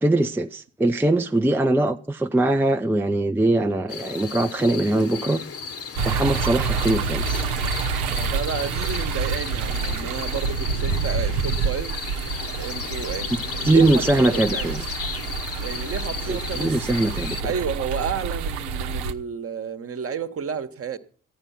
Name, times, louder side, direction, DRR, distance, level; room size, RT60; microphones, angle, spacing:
voice 1, 0.0-5.4 6.0-7.4 13.3-14.8 16.3-17.4, right 2 dB, 5° right, 0.6 m, -22 dB
sound 1, 3.9-17.4, left 6 dB, 35° left, 1.1 m, -34 dB
sound 2, 6.0-19.1, right 5 dB, 70° right, 1.0 m, -28 dB
voice 2, 8.1-12.0 12.5-14.8 15.6-16.9 17.4-21.0, right 6 dB, 35° right, 1.2 m, -31 dB
15.0 x 9.9 x 5.8 m
figure-of-eight pair, 45°, 38 cm